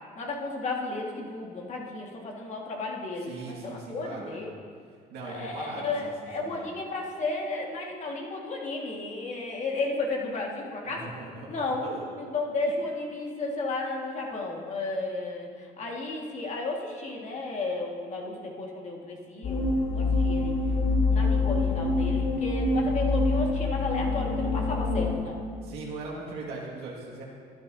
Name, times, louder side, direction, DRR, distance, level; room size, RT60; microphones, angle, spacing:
voice 1, 0.2-4.5 5.2-11.1 11.5-11.8 12.2-20.5 21.1-25.4, left 3 dB, 45° left, -1 dB, 1.8 m, -33 dB
voice 2, 3.2-4.4 5.1-6.1 6.4-6.7 10.8-12.0 25.6-27.2, right 3 dB, 85° right, -4 dB, 1.9 m, -39 dB
sound 1, 19.4-25.1, left 3 dB, 75° left, 1.8 m, -25 dB
12.5 x 11.0 x 2.7 m, 2.1 s
cardioid pair, 110°, 17 cm